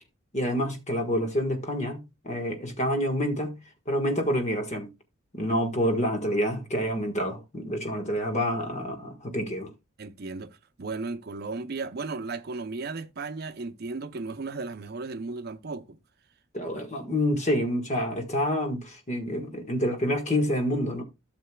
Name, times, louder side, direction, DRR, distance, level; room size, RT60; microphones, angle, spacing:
voice 1, 0.3-3.6 3.9-4.9 5.3-9.7 16.5-21.0, equal, 35° left, 1.5 m, -28 dB
voice 2, 10.0-16.0, right 3 dB, 50° right, 0.6 m, -35 dB
13.0 x 6.7 x 2.3 m
head